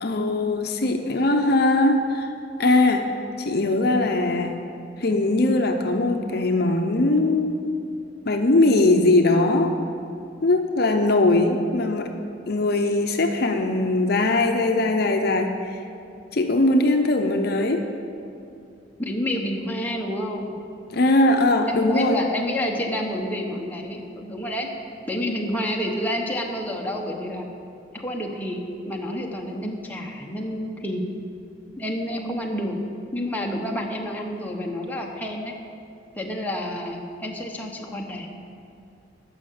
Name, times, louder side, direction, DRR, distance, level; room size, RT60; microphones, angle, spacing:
voice 1, 0.0-2.3 2.6-3.1 3.4-4.5 5.0-7.7 8.3-9.7 10.4-12.1 12.5-15.8 16.3-17.9 20.9-22.2, left 2 dB, 55° left, 5 dB, 0.7 m, -20 dB
voice 2, 19.0-20.6 21.7-24.7 25.1-27.5 27.9-31.0 31.8-32.8 33.1-35.5 36.1-38.3, left 1 dB, 10° left, -1 dB, 1.0 m, -29 dB
11.5 x 6.5 x 7.7 m, 2.6 s
head